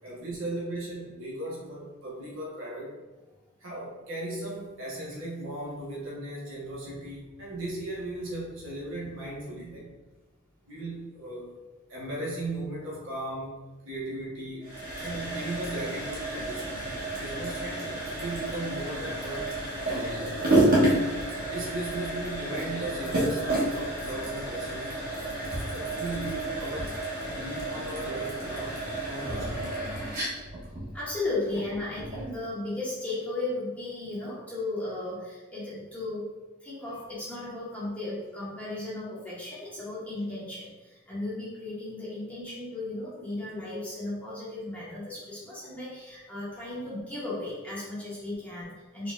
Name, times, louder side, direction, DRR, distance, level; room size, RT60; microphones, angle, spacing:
voice 1, 0.0-3.0 3.6-9.9 10.7-11.6 11.9-14.7 15.0-16.9 17.2-19.5 19.8-20.5 20.8-21.2 21.5-24.9 25.7-26.9 27.3-29.9, right 1 dB, 70° right, -5 dB, 1.2 m, -37 dB
sound 1, 14.6-32.3, right 1 dB, 45° right, 1.4 m, -30 dB
voice 2, 30.9-36.3 36.6-49.1, left 2 dB, 5° left, -9 dB, 1.3 m, -35 dB
4.2 x 3.8 x 2.5 m, 1.2 s
head